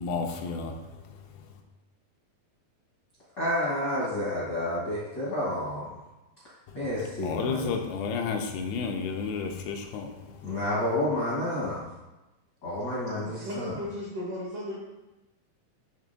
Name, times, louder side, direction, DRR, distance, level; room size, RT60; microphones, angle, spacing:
voice 1, 0.0-1.5 6.7-6.8 7.2-10.5, left 5 dB, 90° left, 3 dB, 2.5 m, -32 dB
voice 2, 3.4-6.0 6.7-7.8 10.4-11.8 12.6-13.8, left 1 dB, 70° left, -8 dB, 1.0 m, -30 dB
voice 3, 13.2-14.8, equal, 75° right, -5 dB, 1.4 m, -35 dB
10.5 x 3.7 x 2.6 m, 1.0 s
omnidirectional pair, 4.3 m